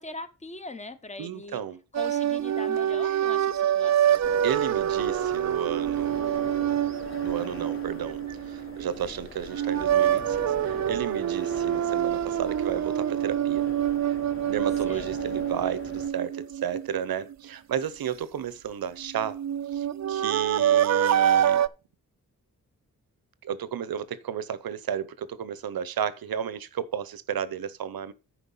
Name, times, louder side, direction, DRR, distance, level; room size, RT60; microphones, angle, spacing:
voice 1, 0.0-1.6 1.9-4.2 14.8-15.0, left 2 dB, 20° left, 0.9 m, -41 dB
voice 2, 1.2-1.8 4.4-6.8 7.2-13.7 14.1-14.2 14.5-19.4 19.7-21.6 23.4-28.1, right 8 dB, 90° right, 0.8 m, -33 dB
sound 1, 1.9-9.0 9.5-17.3 19.0-21.7, right 10 dB, 50° right, 0.5 m, -26 dB
sound 2, 4.2-16.1, left 3 dB, 35° left, 1.3 m, -42 dB
10.0 x 4.8 x 5.5 m
wide cardioid pair, 135°, 35 cm